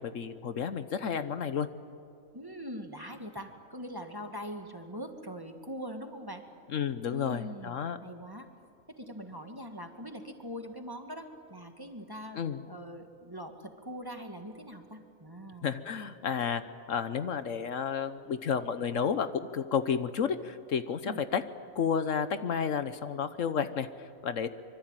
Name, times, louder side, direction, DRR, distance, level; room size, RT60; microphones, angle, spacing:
voice 1, 0.0-1.7 6.7-8.0 12.3-12.6 15.6-16.6 16.9-21.4 21.7-24.5, left 7 dB, 65° left, 11 dB, 1.2 m, -31 dB
voice 2, 2.3-6.4 7.1-7.8 8.0-8.5 8.9-12.4 12.7-15.7 21.0-21.2, equal, 15° right, 5 dB, 1.8 m, -42 dB
25.0 x 24.0 x 9.0 m, 2.5 s
omnidirectional pair, 1.4 m